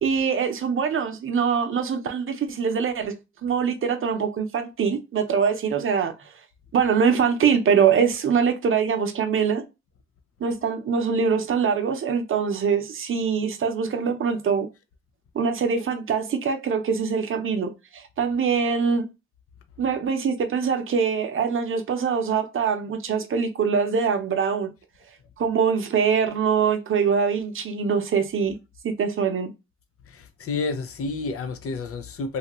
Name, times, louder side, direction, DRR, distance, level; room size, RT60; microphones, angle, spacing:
voice 1, 0.0-3.1 3.4-6.1 6.7-9.6 10.4-14.7 15.3-19.1 19.8-24.7 25.4-28.6 28.8-29.5, right 6 dB, 45° right, 0.7 m, -23 dB
voice 2, 30.1-32.4, left 4 dB, 50° left, 0.6 m, -30 dB
2.8 x 2.4 x 2.9 m
cardioid pair, 90°, 30 cm